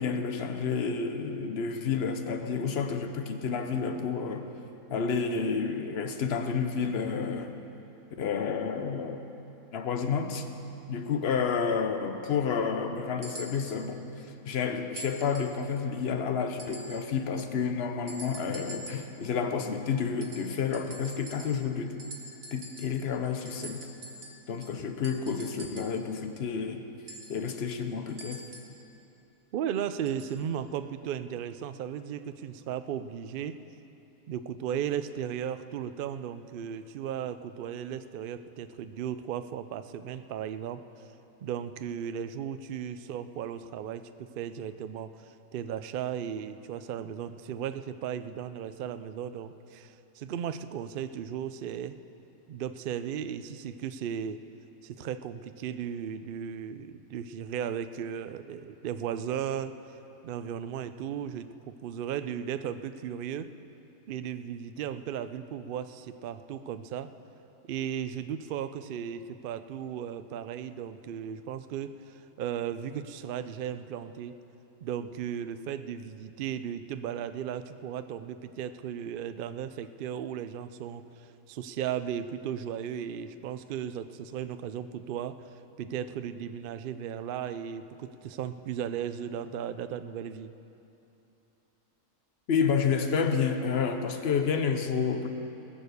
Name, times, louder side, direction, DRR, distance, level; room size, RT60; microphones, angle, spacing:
voice 1, 0.0-4.5 4.9-7.5 8.2-9.3 9.7-10.4 10.9-22.0 22.5-23.9 24.5-26.8 27.3-28.4 92.5-95.3, left 6 dB, 50° left, 7 dB, 1.0 m, -30 dB
sound 1, 13.2-13.9 15.0-15.6 16.6-17.1 18.1-19.2 20.2-21.7 22.0-23.1 23.5-26.0 27.1-28.8 30.1-30.4 31.3-31.4, right 1 dB, 55° right, 1.9 m, -46 dB
voice 2, 29.5-33.6 34.3-40.8 41.4-45.2 45.5-52.0 52.5-54.4 54.8-59.7 60.2-61.5 61.8-63.5 64.1-67.1 67.6-74.4 74.8-85.5 85.8-90.5, right 9 dB, 75° right, 11 dB, 0.5 m, -36 dB
20.0 x 6.9 x 6.8 m, 2.9 s
omnidirectional pair, 1.5 m